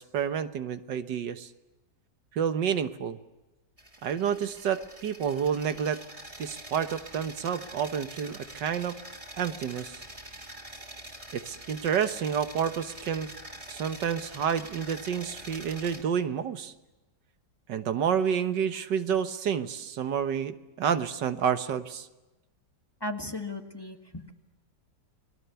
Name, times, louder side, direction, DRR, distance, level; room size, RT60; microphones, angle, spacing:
voice 1, 0.0-1.5 2.3-3.2 4.0-6.0 6.4-9.0 9.4-10.0 11.3-13.3 13.7-16.7 17.7-22.1, right 8 dB, 80° right, 10 dB, 1.8 m, -29 dB
sound 1, 3.8-16.0, right 1 dB, 20° right, 3.1 m, -45 dB
voice 2, 23.0-24.3, left 2 dB, 15° left, 5 dB, 1.6 m, -36 dB
30.0 x 21.5 x 7.0 m, 1.1 s
omnidirectional pair, 1.9 m